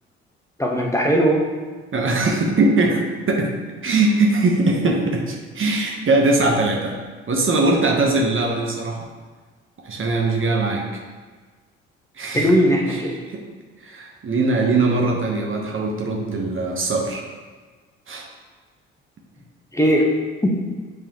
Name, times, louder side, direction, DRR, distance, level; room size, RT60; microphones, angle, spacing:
voice 1, 0.6-1.4 12.3-13.2 19.7-20.1 20.4-20.6, equal, 10° left, -1 dB, 1.3 m, -18 dB
voice 2, 1.9-3.5 3.8-7.0 7.3-9.0 9.8-10.9 12.2-12.5 13.3-13.4 13.8-17.2 18.1-18.3, right 2 dB, 40° right, 0 dB, 1.2 m, -21 dB
7.5 x 4.7 x 3.1 m, 1.4 s
hypercardioid pair, 50°, 32 cm